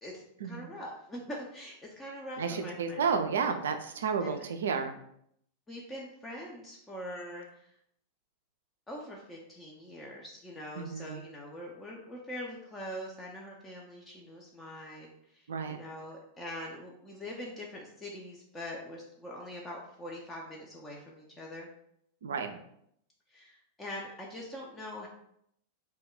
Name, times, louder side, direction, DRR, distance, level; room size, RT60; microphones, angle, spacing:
voice 1, 0.0-3.1 4.2-4.4 5.7-7.6 8.9-21.7 23.3-25.1, left 1 dB, 15° left, -2 dB, 0.4 m, -43 dB
voice 2, 2.4-5.0 10.8-11.2 15.5-15.8 22.2-22.6, right 6 dB, 65° right, 7 dB, 0.3 m, -32 dB
2.2 x 2.1 x 3.7 m, 0.72 s
figure-of-eight pair, 90°, 0 cm